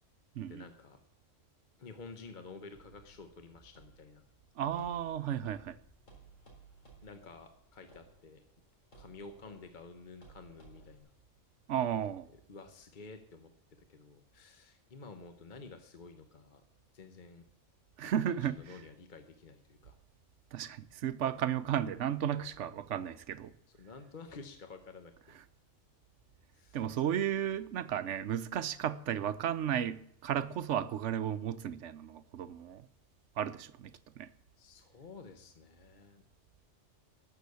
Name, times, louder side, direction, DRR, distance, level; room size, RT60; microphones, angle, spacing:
voice 1, 0.5-1.0 1.8-4.2 7.0-8.4 8.9-11.1 12.3-13.5 13.9-16.6 16.9-17.4 18.3-20.0 23.7-25.4 26.5-26.8 34.6-36.2, left 4 dB, 40° left, 1.1 m, -51 dB
sound 1, 2.7-11.0, right 3 dB, 85° left, 4.3 m, -60 dB
voice 2, 4.6-5.8 11.7-12.3 18.0-18.6 20.5-23.5 26.7-32.8 33.4-33.9 34.2-34.3, right 9 dB, 75° right, 1.0 m, -34 dB
13.0 x 7.0 x 8.3 m
omnidirectional pair, 1.3 m